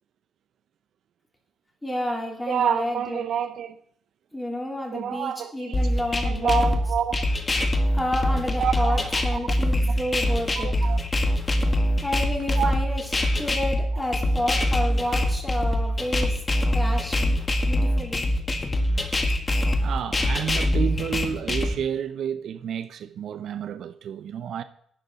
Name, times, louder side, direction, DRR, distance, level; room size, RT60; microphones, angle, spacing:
voice 1, 1.8-3.2 4.3-6.7 7.9-10.7 12.0-13.0 13.3-16.4 16.7-17.3 17.7-18.2, left 1 dB, 10° left, 3.3 m, -30 dB
voice 2, 2.5-3.8 4.9-7.3 8.6-9.5 9.8-9.9 10.5-11.0 12.6-12.7 13.9-14.0 19.8-24.6, right 8 dB, 65° right, 0.5 m, -29 dB
sound 1, 5.7-21.7, left 1 dB, 25° left, 1.7 m, -23 dB
11.5 x 9.4 x 4.0 m
cardioid pair, 90°, 0 cm